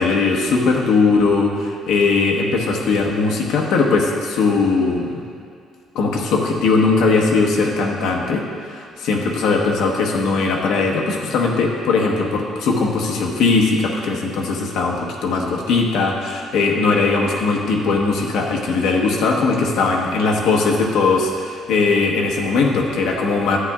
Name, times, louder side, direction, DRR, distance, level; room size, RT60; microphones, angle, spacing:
voice 1, 0.0-5.2 5.9-8.4 8.7-23.6, left 4 dB, 70° left, 0 dB, 1.1 m, -19 dB
11.5 x 9.0 x 2.4 m, 2.3 s
cardioid pair, 175°, 0 cm